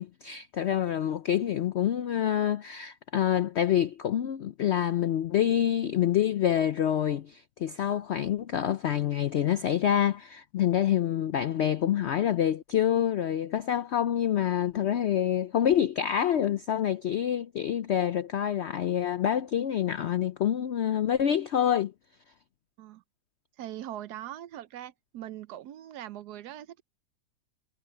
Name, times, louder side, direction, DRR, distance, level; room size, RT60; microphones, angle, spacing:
voice 1, 0.0-21.9, left 10 dB, 75° left, 0.6 m, -27 dB
voice 2, 23.6-26.8, right 12 dB, 75° right, 1.1 m, -41 dB
omnidirectional pair, 1.8 m